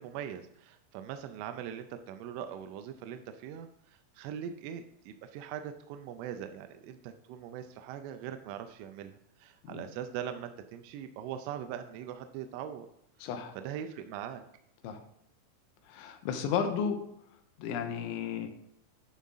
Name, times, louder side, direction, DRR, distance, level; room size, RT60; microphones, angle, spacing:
voice 1, 0.0-9.1 9.4-12.9 13.6-14.4, right 9 dB, 85° right, 8 dB, 3.0 m, -41 dB
voice 2, 13.2-13.5 14.8-15.0 15.9-17.0 17.6-18.5, left 7 dB, 85° left, 5 dB, 3.3 m, -33 dB
11.5 x 5.6 x 3.6 m, 0.76 s
omnidirectional pair, 5.5 m